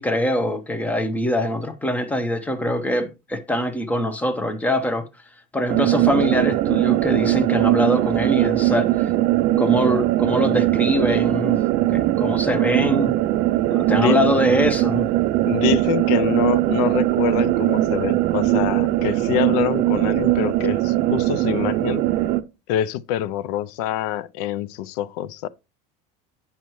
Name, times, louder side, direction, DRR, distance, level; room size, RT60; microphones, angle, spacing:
voice 1, 0.0-5.1 5.5-9.1 9.6-11.6 11.9-13.1 13.7-15.1, left 1 dB, 10° left, 0.7 m, -23 dB
sound 1, 5.7-22.4, right 16 dB, 55° right, 0.5 m, -20 dB
voice 2, 15.5-22.1 22.7-25.5, left 12 dB, 85° left, 0.4 m, -25 dB
9.2 x 5.5 x 3.0 m
cardioid pair, 145°, 19 cm